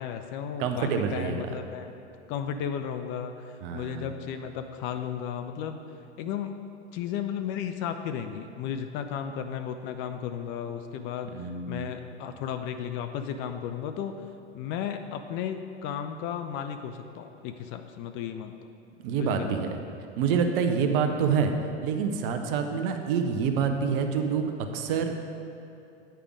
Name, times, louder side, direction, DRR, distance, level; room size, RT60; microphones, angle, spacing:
voice 1, 0.0-1.9 2.3-5.8 6.2-6.5 6.9-14.1 14.5-18.5 19.2-19.6, left 8 dB, 35° left, 7 dB, 0.4 m, -34 dB
voice 2, 0.6-1.4 3.6-4.1 11.3-11.9 19.0-19.8 20.2-21.5 21.8-25.1, right 6 dB, 50° right, 6 dB, 0.8 m, -27 dB
9.0 x 5.1 x 4.9 m, 2.7 s
hypercardioid pair, 90°, 34 cm